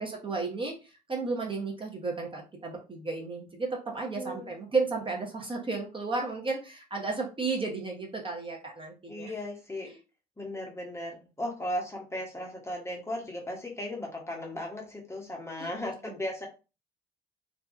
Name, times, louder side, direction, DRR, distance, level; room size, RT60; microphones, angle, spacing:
voice 1, 0.0-9.3 9.8-10.0 15.6-15.7 16.0-16.2, right 3 dB, 25° right, 0 dB, 0.9 m, -33 dB
voice 2, 4.0-4.5 9.1-9.9 10.4-16.5, left 1 dB, 10° left, 0 dB, 0.9 m, -36 dB
2.6 x 2.2 x 2.5 m, 0.31 s
hypercardioid pair, 55°, 21 cm